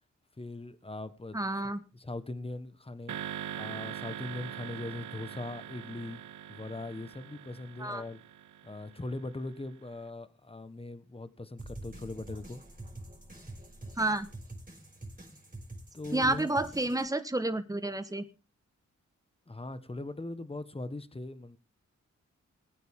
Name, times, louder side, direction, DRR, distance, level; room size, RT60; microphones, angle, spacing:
voice 1, 0.4-1.4 1.9-3.2 3.5-6.2 6.5-8.2 8.6-12.6 15.9-16.5 19.5-21.6, left 2 dB, 20° left, 1.4 m, -40 dB
voice 2, 1.3-1.8 7.8-8.0 14.0-14.3 16.1-18.2, right 2 dB, 10° right, 1.4 m, -30 dB
sound 1, 3.1-9.5, right 10 dB, 80° right, 0.8 m, -43 dB
sound 2, 11.6-17.1, right 1 dB, 25° right, 5.7 m, -46 dB
19.5 x 9.3 x 3.7 m
cardioid pair, 60°, 30 cm